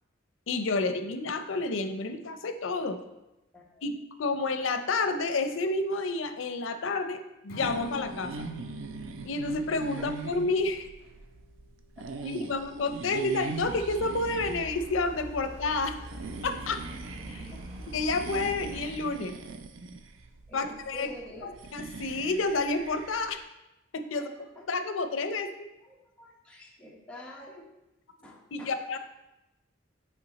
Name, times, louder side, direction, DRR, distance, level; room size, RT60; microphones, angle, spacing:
voice 1, 0.5-3.0 3.8-3.9 4.2-8.3 9.2-10.9 12.2-16.0 16.4-16.8 17.3-17.5 17.9-19.3 20.5-21.1 21.4-23.4 23.9-24.3 24.7-25.5 28.5-29.0, left 3 dB, 80° left, 9 dB, 0.6 m, -30 dB
voice 2, 3.5-3.9 10.0-10.1 12.0-12.5 17.5-17.7 20.5-21.6 24.1-24.7 25.0-25.1 25.3-25.4 25.8-27.7 28.2-29.0, left 1 dB, 5° left, -3 dB, 1.0 m, -48 dB
Strum, 7.5-13.8, left 2 dB, 55° left, 1.2 m, -51 dB
sound 1, 7.6-23.4, right 4 dB, 80° right, 0.4 m, -42 dB
sound 2, 13.6-18.9, equal, 30° right, 0.9 m, -44 dB
8.4 x 3.4 x 4.1 m, 0.95 s
head